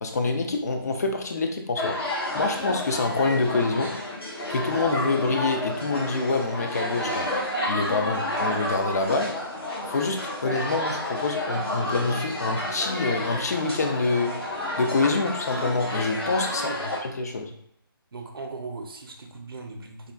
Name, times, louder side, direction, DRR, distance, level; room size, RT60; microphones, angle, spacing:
voice 1, 0.0-4.0 4.5-7.3 7.7-9.4 9.9-14.4 14.8-17.5, left 3 dB, 45° left, 4 dB, 0.4 m, -26 dB
sound 1, 1.8-17.0, left 1 dB, 85° left, 1.2 m, -30 dB
voice 2, 16.6-16.9 18.1-20.1, right 3 dB, 70° right, 3 dB, 0.6 m, -38 dB
3.5 x 2.3 x 2.2 m, 0.74 s
figure-of-eight pair, 155°, 12 cm